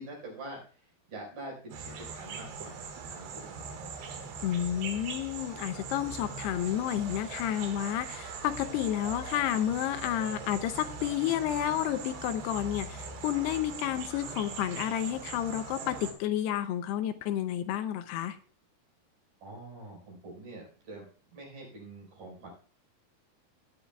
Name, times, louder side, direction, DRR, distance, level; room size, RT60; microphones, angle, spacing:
voice 1, 0.0-3.9 19.4-22.5, right 2 dB, 55° right, -2 dB, 6.3 m, -45 dB
sound 1, 1.7-16.1, right 5 dB, 75° right, 3.7 m, -41 dB
voice 2, 4.4-18.4, left 11 dB, 80° left, 10 dB, 2.7 m, -31 dB
18.0 x 11.0 x 2.3 m, 0.40 s
omnidirectional pair, 4.8 m